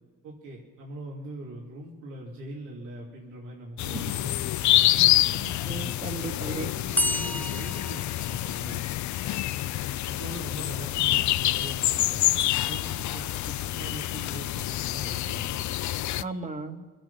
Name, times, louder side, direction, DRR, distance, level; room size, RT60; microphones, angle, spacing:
voice 1, 0.2-5.1 6.3-8.8 10.1-12.2 12.7-15.7, right 1 dB, 85° right, -4 dB, 3.1 m, -41 dB
sound 1, 3.8-16.2, left 14 dB, 70° left, 0.5 m, -27 dB
voice 2, 5.0-6.7 16.2-16.8, right 3 dB, 25° right, 5 dB, 1.9 m, -36 dB
sound 2, 7.0-8.9 12.4-13.4, left 1 dB, 5° left, 0.5 m, -33 dB
25.5 x 8.9 x 5.7 m, 1.5 s
cardioid pair, 90°, 30 cm